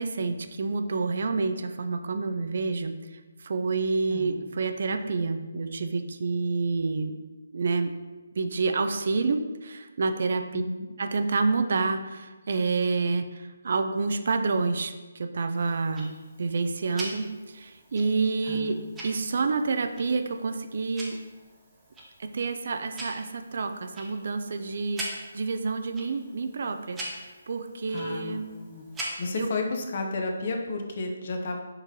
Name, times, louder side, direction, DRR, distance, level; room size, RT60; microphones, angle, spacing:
voice 1, 0.0-3.0 3.4-7.1 7.5-7.9 8.4-10.6 11.0-16.1 16.4-21.2 22.2-27.0 27.5-28.5 29.4-29.5, right 4 dB, 55° right, 7 dB, 0.3 m, -28 dB
voice 2, 10.5-10.9 18.5-18.8 27.9-28.8 29.2-31.6, left 3 dB, 50° left, 3 dB, 0.6 m, -32 dB
Tick-tock, 15.5-29.6, right 1 dB, 10° right, 0.7 m, -43 dB
4.5 x 3.7 x 2.8 m, 1.2 s
figure-of-eight pair, 150°, 0 cm